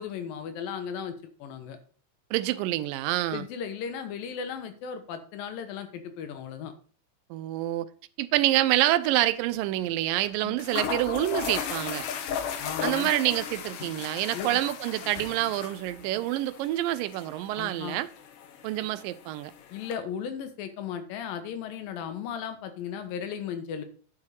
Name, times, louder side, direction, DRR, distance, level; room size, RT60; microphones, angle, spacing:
voice 1, 0.0-1.8 3.3-6.7 10.4-10.6 12.6-13.1 14.3-14.6 17.5-18.0 19.7-23.8, left 7 dB, 90° left, 2.9 m, -36 dB
voice 2, 2.3-3.5 7.3-7.9 8.2-12.1 12.8-18.1 18.6-19.5, right 15 dB, 85° right, 2.3 m, -27 dB
sound 1, 8.5-8.8 9.0-9.1 10.2-10.3 10.6-20.0, left 7 dB, 75° left, 1.4 m, -36 dB
10.5 x 5.5 x 4.8 m
omnidirectional pair, 3.9 m